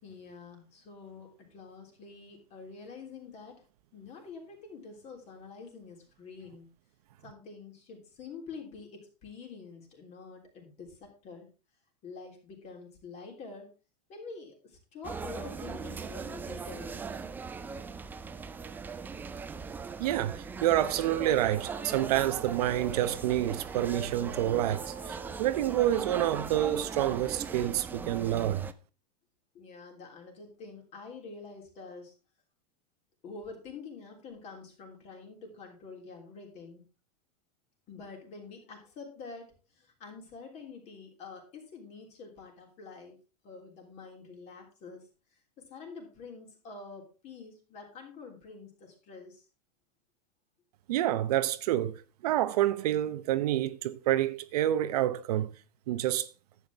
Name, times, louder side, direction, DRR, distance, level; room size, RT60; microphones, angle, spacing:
voice 1, 0.0-3.6 3.9-6.7 7.2-11.5 12.0-13.7 14.1-17.0 29.5-32.1 33.2-36.9 37.9-43.2 43.4-45.0 45.6-49.4, left 4 dB, 35° left, 3.4 m, -47 dB
sound 1, 15.0-28.7, right 5 dB, 10° right, 0.4 m, -40 dB
voice 2, 20.0-28.7 50.9-55.5 55.9-56.3, right 13 dB, 70° right, 0.9 m, -28 dB
sound 2, 20.7-27.6, right 7 dB, 35° right, 1.8 m, -47 dB
10.5 x 8.5 x 3.5 m
supercardioid pair, 150°, 21 cm